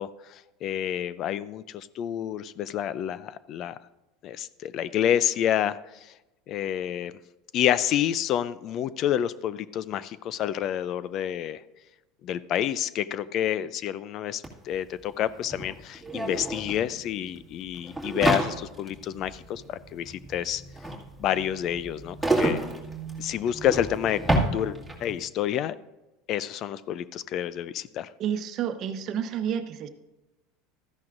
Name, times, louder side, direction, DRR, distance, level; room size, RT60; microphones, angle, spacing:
voice 1, 0.0-3.8 4.2-5.8 6.5-7.1 7.5-11.6 12.2-20.6 21.2-22.7 23.2-25.8 26.3-28.1, left 10 dB, 50° left, 17 dB, 0.4 m, -29 dB
sound 1, 14.4-14.5 14.7-25.2, right 2 dB, ahead, 2.2 m, -30 dB
voice 2, 28.2-29.9, right 8 dB, 50° right, 8 dB, 1.0 m, -30 dB
13.5 x 10.5 x 2.6 m, 1.0 s
supercardioid pair, 100°, 0 cm